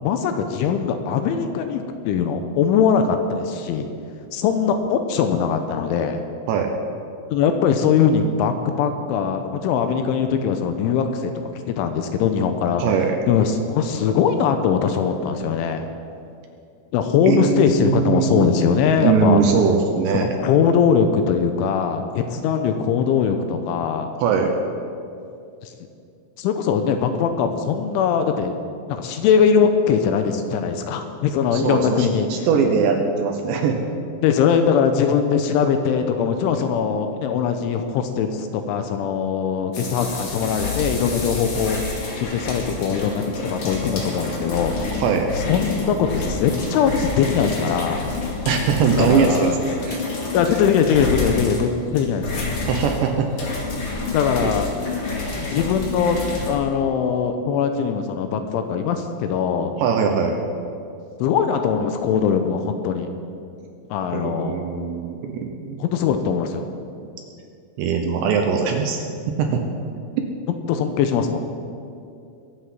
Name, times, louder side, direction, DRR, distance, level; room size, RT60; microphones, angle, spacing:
voice 1, 0.0-3.9 4.3-6.2 7.3-12.8 13.3-15.9 16.9-19.4 20.1-24.1 25.6-25.7 26.4-28.5 28.9-32.5 34.2-41.8 42.2-45.0 45.4-48.0 49.0-49.6 50.3-52.3 54.1-54.7 55.3-56.2 56.5-59.7 61.2-63.1 63.9-64.6 65.8-66.6 70.7-71.4, left 7 dB, 80° left, 7 dB, 3.0 m, -21 dB
voice 2, 12.8-13.2 17.3-18.5 19.0-20.3 24.2-24.5 31.5-33.8 45.0-45.3 48.5-50.0 52.7-53.3 54.4-54.5 59.8-60.4 64.1-65.8 67.8-69.0 69.4-69.6, right 6 dB, 75° right, 4 dB, 2.8 m, -21 dB
sound 1, 39.7-56.5, left 3 dB, 40° left, 2.4 m, -28 dB
22.5 x 8.2 x 6.0 m, 2.5 s
omnidirectional pair, 5.9 m